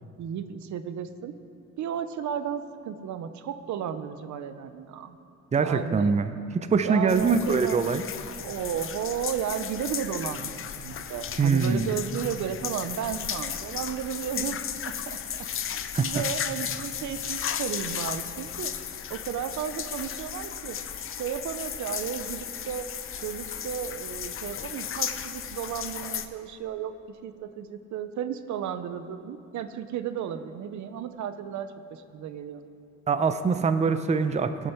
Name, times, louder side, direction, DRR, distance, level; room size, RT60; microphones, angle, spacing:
voice 1, 0.2-1.3 1.8-5.2 5.6-6.1 6.8-7.8 8.4-14.6 15.1-15.2 16.0-18.7 19.1-20.8 21.2-22.9 23.2-26.9 27.2-32.6, right 9 dB, 70° right, 11 dB, 0.7 m, -33 dB
voice 2, 5.5-6.3 6.7-8.0 11.4-11.9 15.9-16.2 33.1-34.7, right 5 dB, 25° right, 10 dB, 0.5 m, -23 dB
sound 1, 7.1-26.3, left 8 dB, 45° left, 0.6 m, -35 dB
16.0 x 7.2 x 4.5 m, 2.7 s
cardioid pair, 90°, 30 cm